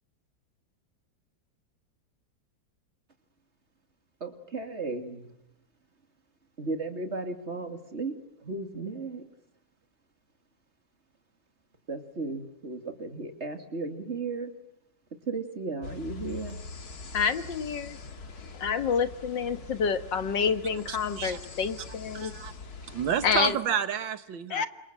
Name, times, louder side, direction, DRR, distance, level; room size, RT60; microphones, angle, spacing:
voice 1, 4.2-5.3 6.6-9.3 11.9-14.5 15.3-16.6, right 3 dB, 35° right, 6 dB, 2.8 m, -35 dB
sound 1, 15.8-23.5, left 4 dB, 55° left, 2.4 m, -43 dB
voice 2, 17.1-18.0 18.5-22.3 23.2-23.6 24.5-24.7, left 6 dB, 70° left, 10 dB, 2.1 m, -28 dB
voice 3, 20.9-21.4 22.1-22.5 22.8-24.7, right 8 dB, 90° right, 11 dB, 2.1 m, -30 dB
29.5 x 26.5 x 7.6 m, 0.83 s
omnidirectional pair, 2.0 m